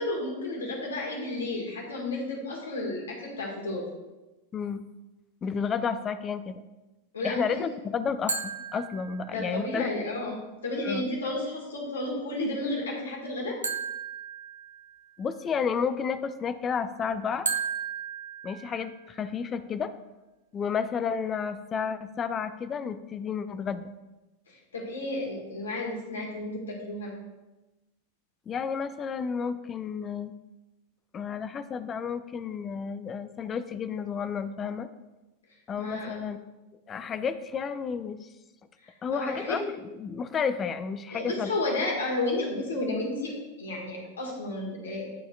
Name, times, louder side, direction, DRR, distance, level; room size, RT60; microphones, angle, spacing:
voice 1, 0.0-3.9 7.1-7.7 9.3-10.4 10.6-13.6 24.5-27.1 35.8-36.2 38.8-39.6 41.1-43.3 43.6-45.1, left 2 dB, 70° left, -1 dB, 1.8 m, -32 dB
voice 2, 4.5-4.8 5.4-6.6 7.2-9.9 10.8-11.1 15.2-17.5 18.4-19.9 20.5-23.9 28.5-30.3 31.1-34.9 35.7-36.4 36.9-38.3 39.0-41.5, left 6 dB, 25° left, 12 dB, 0.4 m, -31 dB
sound 1, 8.3-9.6 13.6-15.2 17.5-19.2, right 6 dB, 75° right, 0.6 m, -34 dB
10.5 x 4.2 x 2.4 m, 1.1 s
figure-of-eight pair, 90°, 0 cm